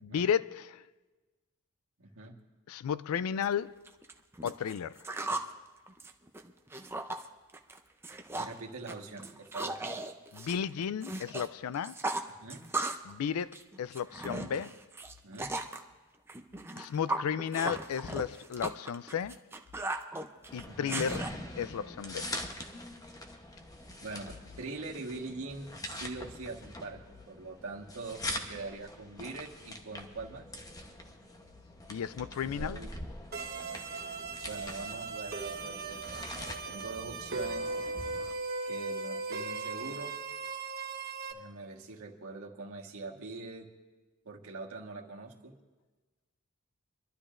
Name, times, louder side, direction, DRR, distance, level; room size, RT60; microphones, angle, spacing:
voice 1, 0.0-0.8 2.7-3.8 4.4-4.9 10.3-11.9 13.1-14.8 16.8-19.4 20.5-21.3 21.6-22.2 31.9-32.8, left 7 dB, 90° left, 0.4 m, -33 dB
voice 2, 2.0-2.4 8.4-9.8 12.4-12.6 15.2-15.5 20.7-21.0 24.0-27.0 27.3-30.5 32.4-32.9 34.4-37.7 38.6-40.1 41.3-43.7 44.2-45.5, right 3 dB, 75° right, 1.5 m, -43 dB
sound 1, 3.4-3.5 3.9-5.5 5.9-7.3 7.5-7.8 8.0-8.6 8.9-11.5 11.7-13.1 13.4-15.8 16.3-21.3, right 2 dB, 10° right, 0.6 m, -37 dB
sound 2, 20.5-38.3, left 1 dB, 15° left, 0.9 m, -44 dB
sound 3, 33.3-41.3, right 3 dB, 50° right, 1.1 m, -38 dB
25.5 x 12.0 x 2.5 m
head